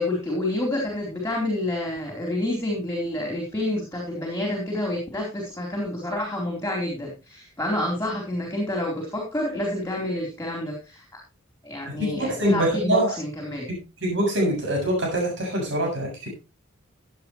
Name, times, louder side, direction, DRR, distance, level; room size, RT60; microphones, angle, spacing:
voice 1, 0.0-11.0 11.6-13.6, left 1 dB, 15° left, 0 dB, 4.1 m, -28 dB
voice 2, 11.9-13.1 14.0-16.3, right 1 dB, 60° right, -1 dB, 7.2 m, -24 dB
16.0 x 9.2 x 3.2 m, 0.28 s
head